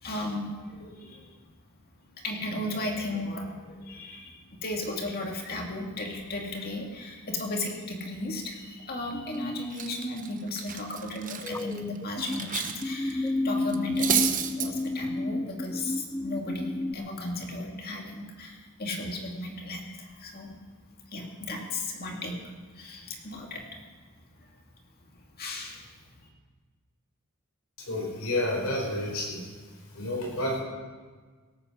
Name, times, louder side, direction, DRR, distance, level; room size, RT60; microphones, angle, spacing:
voice 1, 0.0-1.2 2.2-20.5 21.1-22.4 22.7-23.8 25.4-26.0, left 2 dB, 45° left, 1 dB, 2.3 m, -35 dB
sound 1, 9.1-9.7 11.4-12.4 12.8-17.0, left 2 dB, 10° left, 0.3 m, -31 dB
Cutlery silverware, 9.1-9.4 9.7-12.8 13.1-13.3 13.7-14.7, right 9 dB, 40° right, 0.9 m, -31 dB
voice 2, 27.9-29.4 29.9-30.6, left 1 dB, 80° left, -1 dB, 4.7 m, -30 dB
17.5 x 8.7 x 6.2 m, 1.4 s
head